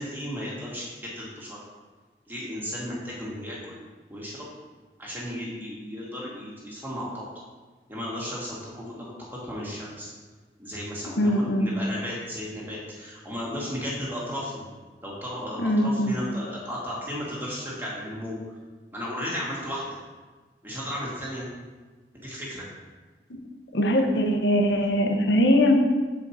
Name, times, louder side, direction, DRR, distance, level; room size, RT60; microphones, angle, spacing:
voice 1, 0.0-1.7 2.3-3.8 4.1-4.5 5.0-7.3 7.9-10.1 10.6-14.6 15.0-18.4 18.9-19.8 20.6-21.5 22.1-22.7, equal, 10° right, -6 dB, 1.8 m, -34 dB
voice 2, 11.2-11.7 15.6-16.2 23.3-23.4 23.7-25.8, equal, 85° left, 3 dB, 1.0 m, -21 dB
7.4 x 5.1 x 4.2 m, 1.4 s
head